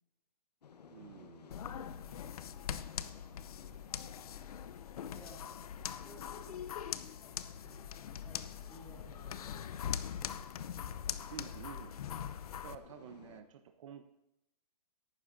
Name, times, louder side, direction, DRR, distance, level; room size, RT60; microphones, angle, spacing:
sound 1, 0.6-13.4, left 6 dB, 85° left, 1.2 m, -58 dB
voice 1, 0.9-1.6 11.3-12.0 12.6-14.0, right 9 dB, 50° right, 8 dB, 0.9 m, -50 dB
sound 2, 1.5-12.8, left 9 dB, 65° left, 0.7 m, -42 dB
voice 2, 1.9-2.4 3.6-4.0 5.1-5.6 6.0-7.1 7.6-7.9 8.2-9.7 11.4-11.5, equal, 10° left, -2 dB, 3.6 m, -57 dB
17.0 x 12.0 x 2.7 m, 0.80 s
hypercardioid pair, 140°, 20 cm